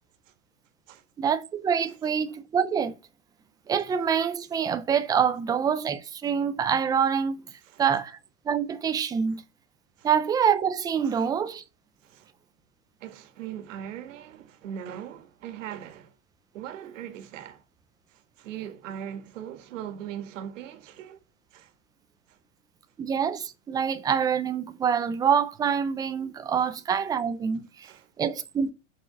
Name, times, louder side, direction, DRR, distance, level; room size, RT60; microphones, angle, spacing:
voice 1, 1.2-3.0 3.7-7.4 7.8-8.2 8.5-9.4 10.0-11.6 23.0-27.7 28.2-28.7, right 7 dB, 10° right, 0.4 m, -26 dB
voice 2, 13.0-16.1 16.5-17.6 18.1-21.2 21.5-21.7 22.3-22.4 27.8-28.1, right 9 dB, 85° right, 1.7 m, -40 dB
6.0 x 4.8 x 6.6 m
supercardioid pair, 150°, 37 cm